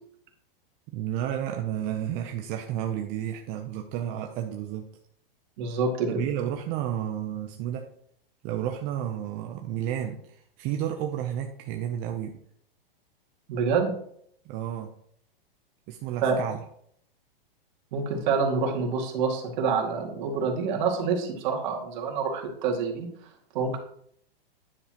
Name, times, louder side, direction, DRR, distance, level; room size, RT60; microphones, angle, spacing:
voice 1, 0.9-4.9 6.1-7.9 8.4-12.4 14.4-14.9 15.9-16.6, right 10 dB, 35° right, 4 dB, 0.7 m, -31 dB
voice 2, 5.6-6.3 13.5-13.9 16.2-16.4 17.9-23.1 23.5-23.8, right 5 dB, 50° right, 1 dB, 2.2 m, -27 dB
9.7 x 7.1 x 3.0 m, 0.66 s
hypercardioid pair, 135°, 29 cm